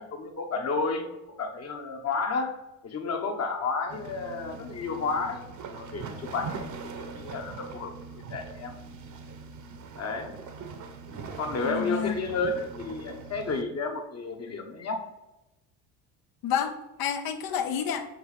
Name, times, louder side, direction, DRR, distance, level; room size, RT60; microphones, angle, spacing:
voice 1, 0.0-2.6 2.8-5.4 5.7-7.9 8.3-8.7 9.9-10.4 11.4-15.0, left 4 dB, 40° left, 4 dB, 1.2 m, -31 dB
sound 1, 3.9-13.6, right 4 dB, 50° right, 1.0 m, -41 dB
voice 2, 11.6-12.3 16.4-18.1, left 8 dB, 65° left, 7 dB, 1.0 m, -29 dB
7.9 x 3.1 x 4.9 m, 0.99 s
supercardioid pair, 95°, 39 cm